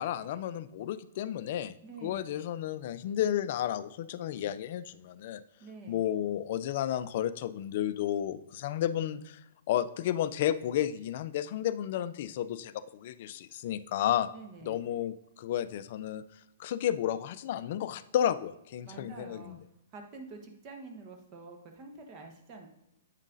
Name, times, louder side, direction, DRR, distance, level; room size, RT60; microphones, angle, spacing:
voice 1, 0.0-1.7 2.0-5.4 5.9-9.4 9.7-14.3 14.6-16.2 16.6-19.6, left 11 dB, 55° left, 15 dB, 0.3 m, -32 dB
voice 2, 1.8-2.4 5.6-6.0 14.3-14.8 18.9-19.6 19.9-22.7, right 3 dB, 35° right, 3 dB, 1.1 m, -47 dB
8.1 x 5.4 x 2.6 m, 0.85 s
hypercardioid pair, 125°, 0 cm